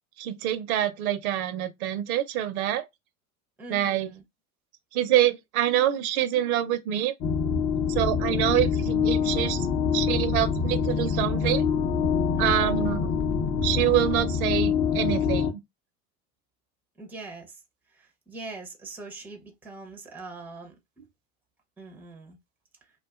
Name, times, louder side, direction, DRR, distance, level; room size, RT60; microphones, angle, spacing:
voice 1, 0.2-2.8 3.7-4.1 4.9-7.1 7.9-9.7 9.9-11.6 12.4-13.1 13.6-15.6, right 12 dB, 70° right, 0.6 m, -26 dB
voice 2, 3.6-4.2 8.4-8.6 12.4-12.9 17.0-17.6 17.9-21.1 21.8-22.4, right 2 dB, 5° right, 0.6 m, -43 dB
sound 1, 7.2-15.5, left 6 dB, 35° left, 0.7 m, -25 dB
2.5 x 2.2 x 2.3 m
hypercardioid pair, 100°, 45 cm